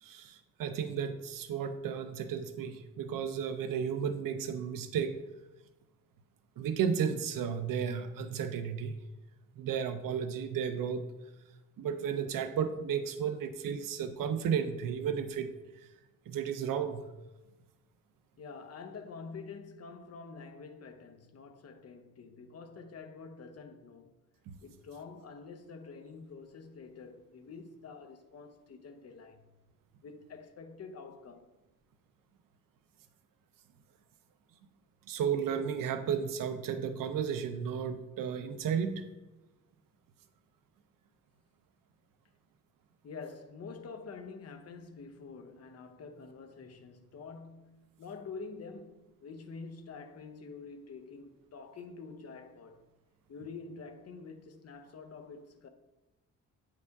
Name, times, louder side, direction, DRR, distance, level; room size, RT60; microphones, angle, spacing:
voice 1, 0.0-5.2 6.6-9.0 9.6-11.1 11.8-15.9 16.3-17.0 24.5-24.6 35.1-39.0, right 7 dB, 80° right, 0.6 m, -33 dB
voice 2, 18.4-24.1 24.6-29.5 30.0-31.5 43.0-52.8 53.3-55.7, left 4 dB, 50° left, 0.8 m, -47 dB
9.1 x 4.9 x 3.5 m
cardioid pair, 115°, 33 cm